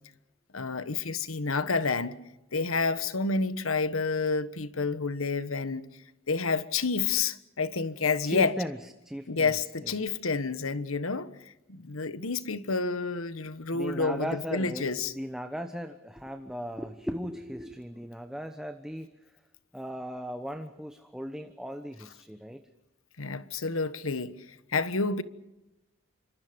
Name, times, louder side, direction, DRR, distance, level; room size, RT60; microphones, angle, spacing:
voice 1, 0.5-2.2 2.5-5.9 6.3-8.5 9.3-11.3 11.7-15.1 23.2-24.3 24.7-25.2, left 4 dB, 90° left, 1.3 m, -29 dB
voice 2, 8.2-9.5 9.8-9.9 13.7-19.1 19.7-22.6, equal, 5° right, 1.0 m, -37 dB
27.5 x 25.5 x 5.3 m
head